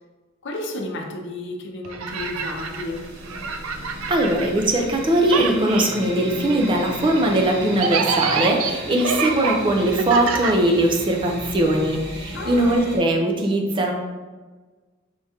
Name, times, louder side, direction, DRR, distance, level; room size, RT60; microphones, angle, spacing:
voice 1, 0.4-3.0 12.3-13.0, left 2 dB, 60° left, 2 dB, 0.6 m, -32 dB
sound 1, 1.8-5.0 5.2-11.2, right 5 dB, 80° right, 0.4 m, -27 dB
sound 2, 2.1-13.0, equal, 55° right, 1.0 m, -36 dB
voice 2, 4.1-13.9, right 1 dB, 25° right, 2 dB, 0.5 m, -20 dB
4.4 x 3.6 x 2.8 m, 1.3 s
head